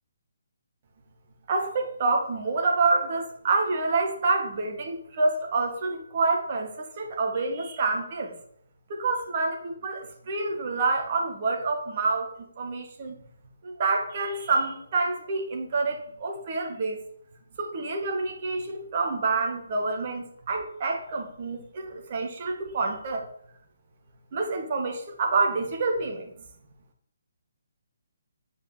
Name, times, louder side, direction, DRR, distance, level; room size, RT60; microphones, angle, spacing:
voice 1, 1.5-8.3 8.9-13.2 13.6-17.1 17.6-23.3 24.3-26.3, right 3 dB, 40° right, 2 dB, 2.1 m, -27 dB
8.4 x 5.1 x 7.4 m, 0.68 s
figure-of-eight pair, 140°, 0 cm